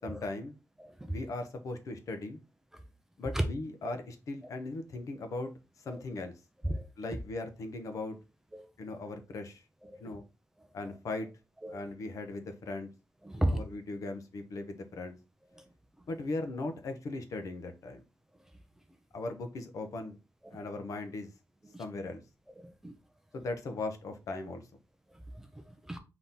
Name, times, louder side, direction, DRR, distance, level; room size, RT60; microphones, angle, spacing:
voice 1, 0.0-0.6 1.1-2.4 3.2-5.5 5.8-6.4 7.0-8.2 8.8-9.6 10.0-10.2 10.7-11.3 11.7-12.9 13.4-15.2 16.1-18.0 19.1-20.2 20.5-21.3 21.8-22.2 23.3-24.7, left 2 dB, 60° left, 0.7 m, -38 dB
voice 2, 0.8-1.1 3.3-3.4 6.6-6.8 8.5-8.6 9.8-10.0 11.6-11.8 13.2-13.6 20.4-20.6 21.7-21.8 22.6-22.9 25.1-26.0, right 1 dB, 5° right, 0.4 m, -34 dB
4.1 x 2.9 x 3.5 m
wide cardioid pair, 165°, 6 cm